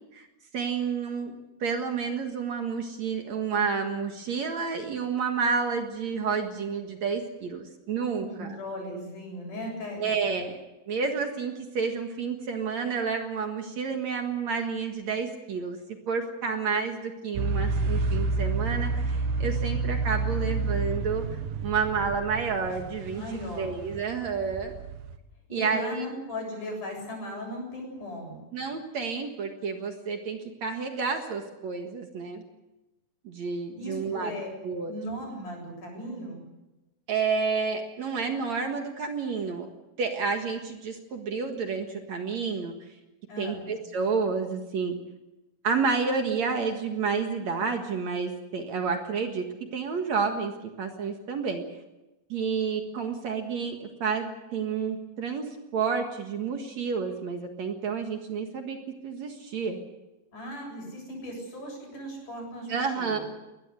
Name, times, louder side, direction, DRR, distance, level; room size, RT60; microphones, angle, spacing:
voice 1, 0.5-1.3 1.6-8.6 10.0-10.6 10.9-15.8 16.1-21.2 21.6-23.2 23.6-24.7 25.5-26.1 28.5-32.4 33.2-34.4 34.6-34.9 37.1-39.7 40.0-42.7 43.4-44.9 45.6-49.5 49.7-50.5 50.8-51.6 52.3-58.8 59.0-59.8 62.7-63.2, right 5 dB, 55° right, 4 dB, 2.7 m, -30 dB
voice 2, 8.2-10.1 23.1-23.8 25.5-28.4 33.8-34.5 34.8-36.4 43.3-43.7 60.3-63.2, left 1 dB, 60° left, 1 dB, 9.5 m, -37 dB
sound 1, 17.4-25.2, right 3 dB, 90° right, 3.2 m, -29 dB
21.5 x 19.5 x 8.3 m, 1.0 s
omnidirectional pair, 4.0 m